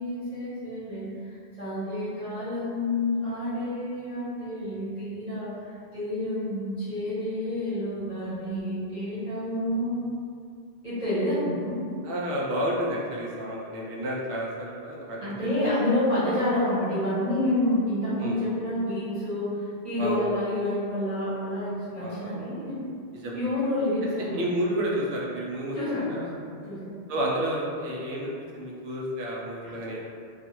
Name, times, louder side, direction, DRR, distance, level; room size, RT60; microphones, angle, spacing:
voice 1, 0.0-10.1 10.8-11.8 15.2-22.8 23.3-24.4 25.7-27.0 29.6-29.7, left 1 dB, 40° right, -14 dB, 1.0 m, -29 dB
voice 2, 12.0-15.5 18.2-18.4 20.0-20.2 22.0-22.3 23.2-23.4 24.3-25.8 26.1-26.3 27.1-30.1, equal, 80° right, -4 dB, 0.9 m, -30 dB
2.4 x 2.3 x 2.9 m, 2.3 s
omnidirectional pair, 1.1 m